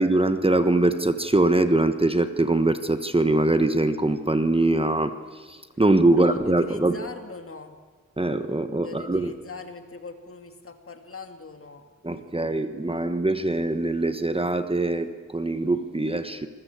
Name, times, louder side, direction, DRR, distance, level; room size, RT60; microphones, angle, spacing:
voice 1, 0.0-7.0 8.2-9.3 12.0-16.5, right 2 dB, 20° right, 9 dB, 1.2 m, -23 dB
voice 2, 6.1-7.8 8.8-13.1, left 4 dB, 50° left, 6 dB, 2.4 m, -42 dB
27.5 x 20.5 x 8.3 m, 1.5 s
wide cardioid pair, 120°, 29 cm